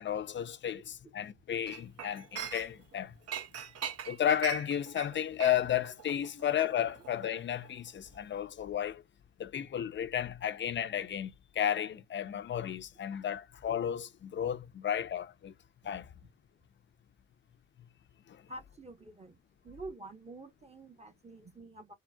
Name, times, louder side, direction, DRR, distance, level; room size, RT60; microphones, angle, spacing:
voice 1, 0.0-3.1 4.0-9.0 9.4-15.5 15.8-16.1 18.3-18.4, left 10 dB, 40° left, 0.5 m, -33 dB
Chink clink, 1.7-2.9 3.3-7.9 8.2-8.4, right 8 dB, 55° right, 0.7 m, -42 dB
voice 2, 18.5-19.4 19.6-21.9, right 2 dB, 20° right, 0.8 m, -47 dB
3.8 x 2.1 x 2.2 m
cardioid pair, 90°, 30 cm